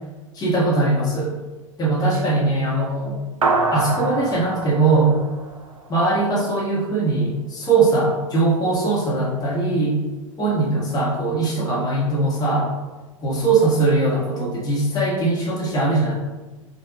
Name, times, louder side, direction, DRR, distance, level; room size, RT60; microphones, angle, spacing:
voice 1, 0.3-1.3 1.8-3.2 3.7-5.1 5.9-10.0 10.4-12.7 13.2-16.1, right 3 dB, 20° left, -4 dB, 1.4 m, -20 dB
sound 1, 3.4-6.1, right 3 dB, 80° right, 0.6 m, -25 dB
4.4 x 2.6 x 4.1 m, 1.2 s
figure-of-eight pair, 90°, 17 cm